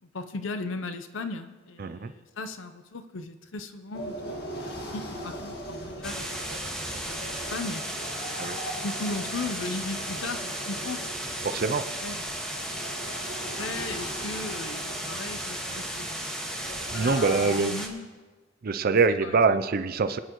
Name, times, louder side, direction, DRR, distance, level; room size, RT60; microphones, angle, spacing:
voice 1, 0.0-6.5 7.1-11.0 12.0-12.3 13.6-16.2 16.9-18.1 19.1-19.6, left 3 dB, 80° left, 8 dB, 0.7 m, -37 dB
voice 2, 1.8-2.1 8.4-8.6 11.4-11.8 16.9-17.8 18.6-20.2, right 4 dB, 50° right, 10 dB, 0.5 m, -24 dB
sound 1, 3.9-17.6, equal, 55° left, 1.9 m, -40 dB
sound 2, 6.0-17.9, right 1 dB, 5° left, 1.6 m, -35 dB
24.5 x 10.0 x 3.1 m, 1.3 s
head